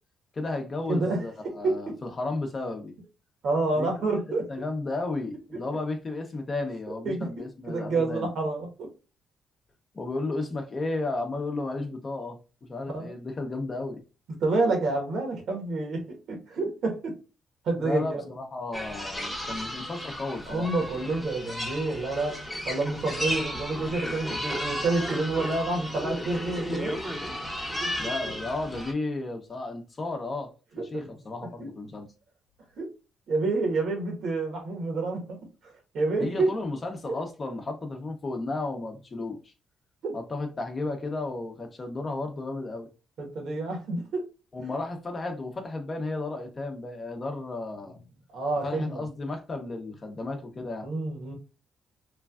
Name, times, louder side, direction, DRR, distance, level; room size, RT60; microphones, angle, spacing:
voice 1, 0.3-2.9 3.7-3.9 4.5-8.3 9.9-12.4 12.7-14.0 17.8-20.7 28.0-30.5 30.8-32.1 36.2-39.5 40.1-42.9 44.5-48.0 48.6-50.9, left 2 dB, 35° left, 0.7 m, -33 dB
voice 2, 0.9-1.9 3.4-4.4 7.0-8.9 12.9-13.1 14.4-16.0 16.3-17.1 17.6-18.2 20.5-22.4 22.6-26.9 27.8-27.9 30.7-31.1 31.6-31.7 32.8-32.9 33.3-35.4 35.6-36.5 40.0-40.1 43.2-44.2 48.3-49.0 50.8-51.3, right 3 dB, 65° right, 1.2 m, -28 dB
sound 1, 18.7-28.9, equal, ahead, 0.8 m, -34 dB
3.1 x 2.3 x 2.3 m
cardioid pair, 90°, 0 cm